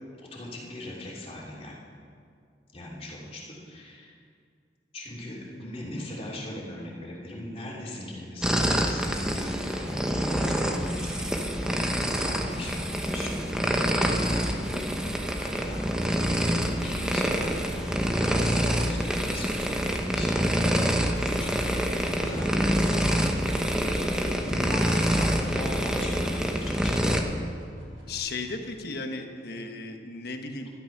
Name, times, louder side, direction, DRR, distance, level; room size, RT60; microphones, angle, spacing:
voice 1, 0.2-1.7 2.7-4.1 4.9-14.9 15.4-20.7 21.0-23.3 24.6-27.1, left 1 dB, 35° left, -4 dB, 2.9 m, -39 dB
sound 1, 8.4-27.2, equal, 5° right, 0.9 m, -26 dB
sound 2, 22.2-28.2, equal, 85° right, 4.1 m, -47 dB
voice 2, 24.5-25.3 28.1-30.7, left 3 dB, 60° left, 5 dB, 1.3 m, -36 dB
12.5 x 12.0 x 6.0 m, 2.2 s
head